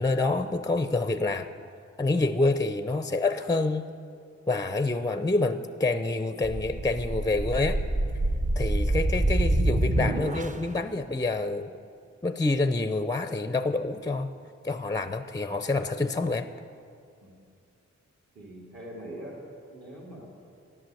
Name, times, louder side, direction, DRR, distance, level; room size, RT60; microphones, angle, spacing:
voice 1, 0.0-1.5 2.0-3.9 4.5-7.8 8.6-11.7 12.2-14.3 14.6-16.5, left 2 dB, 15° left, 10 dB, 0.5 m, -27 dB
sound 1, 6.4-10.8, right 1 dB, 25° right, 0.7 m, -26 dB
voice 2, 18.3-19.4 19.7-20.3, right 1 dB, 55° right, -3 dB, 2.6 m, -43 dB
14.5 x 11.0 x 7.7 m, 2.5 s
wide cardioid pair, 130°, 29 cm